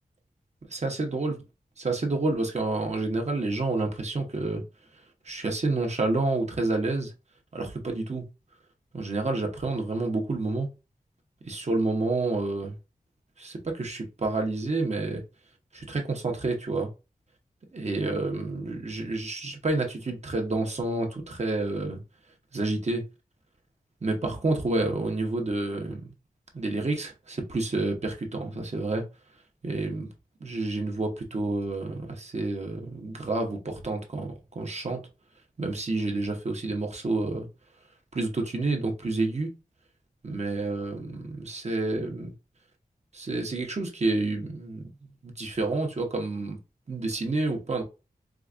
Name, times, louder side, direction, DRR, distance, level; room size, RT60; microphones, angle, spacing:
voice 1, 0.7-1.3 1.8-4.6 5.3-7.1 7.5-8.2 8.9-10.7 11.4-12.8 13.4-15.2 15.7-16.9 17.7-22.0 22.5-23.0 24.0-26.1 26.5-29.0 29.6-30.1 30.4-35.0 35.6-37.5 38.1-39.5 40.2-42.3 43.1-44.8 45.2-46.6 46.9-47.8, right 2 dB, 45° right, 1.0 m, -29 dB
4.7 x 2.3 x 2.5 m
wide cardioid pair, 80°, 15 cm